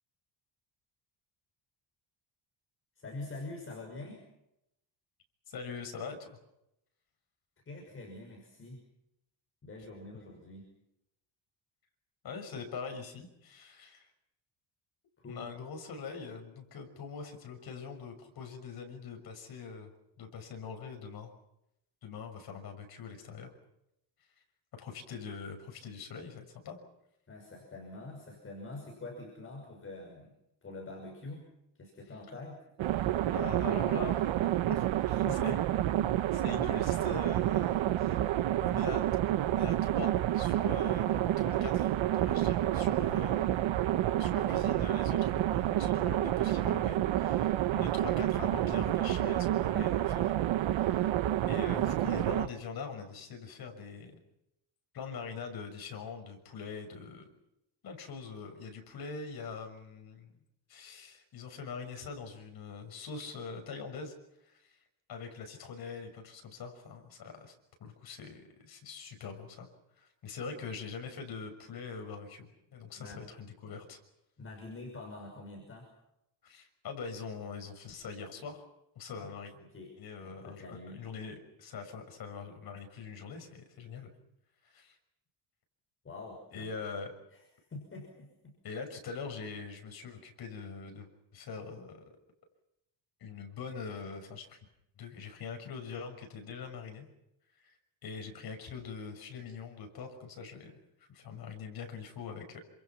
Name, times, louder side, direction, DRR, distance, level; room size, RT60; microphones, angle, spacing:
voice 1, 3.0-4.3 7.7-8.8 9.6-10.7 15.2-15.5 27.3-30.3 30.6-31.5 31.7-32.6 35.2-35.6 73.0-73.2 74.4-75.9 79.1-79.3 79.7-79.9 80.2-81.0 86.0-86.7 87.3-87.4 87.7-88.6, left 2 dB, 25° left, 1 dB, 6.0 m, -45 dB
voice 2, 5.5-6.4 12.2-14.1 15.3-19.9 20.2-21.3 22.0-23.5 24.8-26.8 33.3-35.7 35.9-38.1 38.5-39.0 39.4-50.3 50.6-51.1 51.5-54.2 54.9-57.3 57.8-60.3 60.7-64.1 64.4-64.8 65.1-67.5 67.8-69.7 70.0-74.0 76.4-78.6 78.9-79.5 80.0-84.1 84.6-85.0 86.5-87.1 88.6-92.0 93.2-94.6 95.0-97.1 97.5-97.8 98.0-100.8 101.1-102.6, left 5 dB, 50° left, 5 dB, 6.3 m, -43 dB
sound 1, 32.8-52.5, right 13 dB, 70° right, 1.2 m, -29 dB
29.0 x 27.0 x 6.0 m, 0.84 s
cardioid pair, 175°, 47 cm